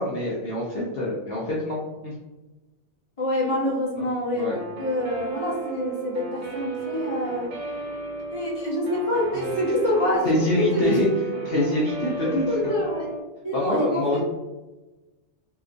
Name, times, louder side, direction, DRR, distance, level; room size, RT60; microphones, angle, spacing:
voice 1, 0.0-2.1 4.3-4.6 9.3-9.5 10.2-11.1 11.4-12.7 13.5-14.2, left 1 dB, 60° left, -5 dB, 0.9 m, -25 dB
voice 2, 3.2-4.5 4.8-7.5 8.3-10.3 10.6-11.0 12.2-13.1 13.4-14.2, left 1 dB, 30° left, -5 dB, 1.1 m, -26 dB
Guitar, 4.5-13.2, right 5 dB, 75° right, 1.0 m, -34 dB
3.7 x 2.9 x 2.6 m, 1.1 s
omnidirectional pair, 1.2 m